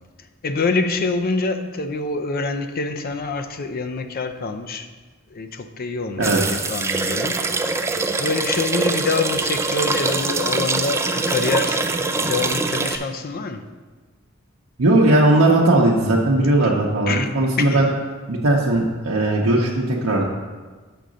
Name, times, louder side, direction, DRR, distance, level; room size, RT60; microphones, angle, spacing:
voice 1, 0.4-4.9 5.3-7.4 8.2-11.8 12.2-13.7 17.1-17.9, left 3 dB, 45° left, 8 dB, 0.5 m, -25 dB
sound 1, 6.2-13.0, right 3 dB, 15° right, 0.3 m, -23 dB
voice 2, 14.8-17.9 18.3-20.3, right 2 dB, 80° right, -4 dB, 0.8 m, -18 dB
6.8 x 3.9 x 6.2 m, 1.4 s
head